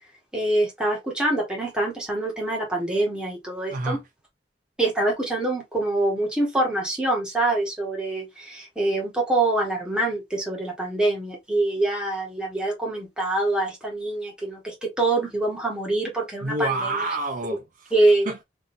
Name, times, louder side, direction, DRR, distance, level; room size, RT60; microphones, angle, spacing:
voice 1, 0.3-4.0 4.8-17.1 17.9-18.3, right 2 dB, 5° right, 1.3 m, -25 dB
voice 2, 3.7-4.0 16.4-17.9 18.3-18.4, right 2 dB, 45° right, 0.5 m, -28 dB
3.5 x 2.6 x 2.6 m
head